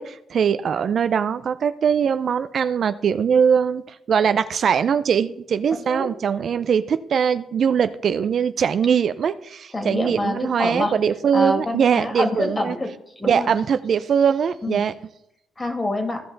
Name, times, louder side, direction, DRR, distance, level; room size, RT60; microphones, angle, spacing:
voice 1, 0.0-12.7 13.3-14.9, right 7 dB, 60° right, 12 dB, 0.5 m, -21 dB
voice 2, 9.7-10.9 11.3-13.5 14.6-14.8 15.6-16.2, left 1 dB, 25° left, 5 dB, 2.6 m, -26 dB
15.5 x 5.6 x 4.0 m, 0.81 s
cardioid pair, 75°, 0 cm